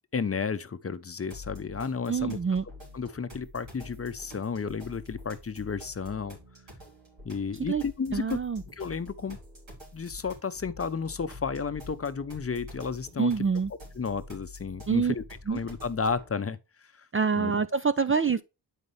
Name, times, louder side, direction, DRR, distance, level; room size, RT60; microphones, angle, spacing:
voice 1, 0.1-2.4 2.9-6.4 7.2-8.4 8.7-9.4 9.9-13.3 14.0-15.2 15.5-17.1 17.3-17.5, left 5 dB, 30° left, 0.6 m, -32 dB
sound 1, 1.3-16.3, left 2 dB, 85° right, 4.0 m, -47 dB
voice 2, 2.1-2.6 7.7-7.8 8.1-8.6 13.2-13.7 14.9-15.1 15.5-15.6 17.1-18.4, right 5 dB, 30° right, 0.4 m, -26 dB
8.0 x 5.5 x 3.2 m
cardioid pair, 75°, 45 cm